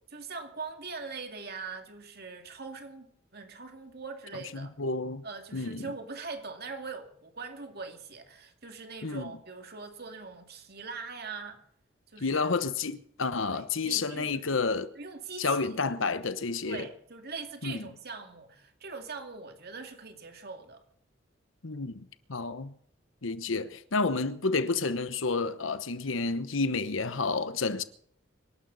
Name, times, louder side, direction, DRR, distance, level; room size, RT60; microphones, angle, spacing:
voice 1, 0.1-3.1 3.3-4.7 5.2-11.6 12.1-12.5 13.5-14.6 15.0-16.1 16.6-20.8, right 4 dB, 55° right, 2.5 m, -42 dB
voice 2, 4.3-5.2 5.5-5.9 9.0-9.3 12.2-14.9 15.4-16.9 17.6-17.9 21.6-22.7 23.2-27.8, left 4 dB, 85° left, 1.0 m, -30 dB
25.5 x 11.5 x 4.1 m
head